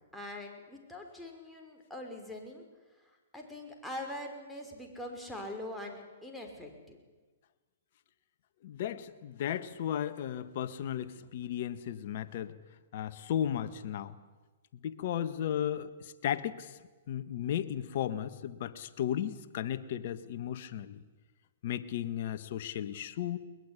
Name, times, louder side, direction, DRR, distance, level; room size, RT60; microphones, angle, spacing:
voice 1, 0.1-2.6 3.3-7.0, left 1 dB, ahead, 0 dB, 5.6 m, -43 dB
voice 2, 8.6-12.5 12.9-14.1 14.8-16.8 17.1-21.0 21.6-23.4, left 10 dB, 55° left, 11 dB, 1.7 m, -35 dB
22.0 x 21.5 x 10.0 m, 1.3 s
hypercardioid pair, 130°, 0 cm